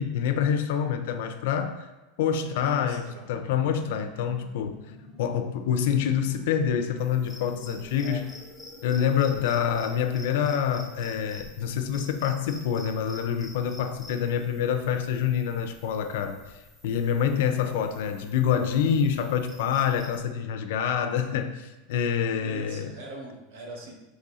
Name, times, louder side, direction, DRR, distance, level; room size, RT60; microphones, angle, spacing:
voice 1, 0.0-1.9 2.2-4.8 5.2-8.2 8.8-16.4 16.8-22.9, left 8 dB, 70° left, 7 dB, 0.5 m, -26 dB
voice 2, 2.4-3.3 3.7-3.9 8.0-8.3 22.4-23.9, right 2 dB, 65° right, 0 dB, 1.1 m, -42 dB
sound 1, 3.3-10.7, left 2 dB, 15° left, 0.6 m, -49 dB
sound 2, 7.0-20.2, left 1 dB, ahead, 1.0 m, -49 dB
4.1 x 3.3 x 3.7 m, 1.1 s
supercardioid pair, 155°, 0 cm